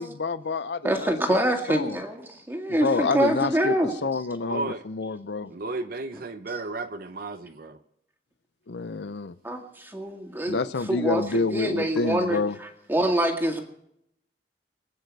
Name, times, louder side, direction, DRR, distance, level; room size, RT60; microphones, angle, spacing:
voice 1, 0.0-1.1 1.7-2.0 2.8-3.8 4.0-5.5 8.7-9.4 10.5-12.6, left 3 dB, 70° left, 0.6 m, -28 dB
voice 2, 0.8-3.9 9.4-10.6 10.9-11.2 11.5-12.4 12.9-13.6, right 1 dB, 10° right, 1.9 m, -25 dB
voice 3, 3.0-3.3 4.5-4.8 5.5-7.8, right 3 dB, 55° right, 0.7 m, -34 dB
24.5 x 9.2 x 4.7 m
head